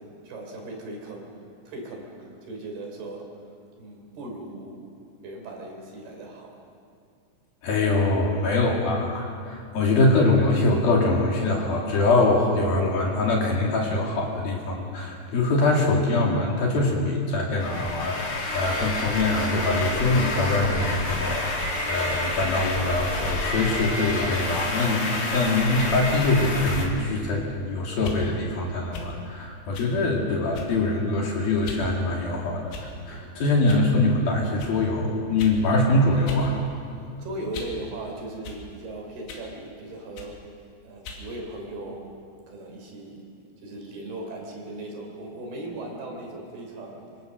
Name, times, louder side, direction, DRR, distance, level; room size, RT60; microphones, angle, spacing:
voice 1, 0.0-1.3 1.7-3.4 3.8-4.8 5.2-6.6 33.1-33.6 37.2-40.4 40.8-42.2 42.5-43.3 43.6-47.1, right 2 dB, 55° right, 1 dB, 5.2 m, -38 dB
voice 2, 7.6-32.7 33.1-36.6, left 2 dB, 55° left, -2 dB, 3.9 m, -23 dB
sound 1, 17.6-26.9, left 2 dB, 35° left, 2.9 m, -29 dB
sound 2, 28.0-28.2 28.9-29.1 29.7-29.9 30.5-30.9 31.6-31.9 32.7-33.1 33.7-33.9 34.6-34.8 35.4-35.6 36.3-36.5 36.8-37.8 38.4-38.6 39.3-39.5 40.2-40.4 41.0-41.3, left 3 dB, 90° left, 5.2 m, -38 dB
25.5 x 25.0 x 6.6 m, 2.3 s
omnidirectional pair, 5.8 m